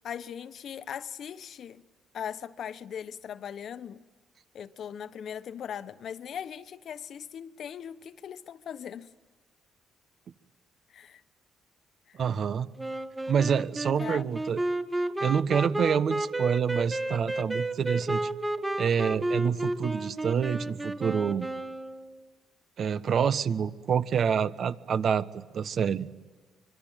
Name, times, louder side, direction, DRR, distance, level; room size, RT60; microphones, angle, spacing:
voice 1, 0.0-1.8 2.1-4.0 4.5-9.1 10.9-11.2 12.1-12.2 14.0-14.3, left 8 dB, 65° left, 1.1 m, -39 dB
voice 2, 12.1-12.7 13.3-14.6 15.2-18.3 18.8-21.5 22.8-26.1, right 7 dB, 55° right, 1.2 m, -27 dB
Wind instrument woodwind instrument, 12.8-22.2, right 2 dB, 10° right, 1.6 m, -32 dB
25.5 x 23.5 x 9.1 m
cardioid pair, 90°, 0 cm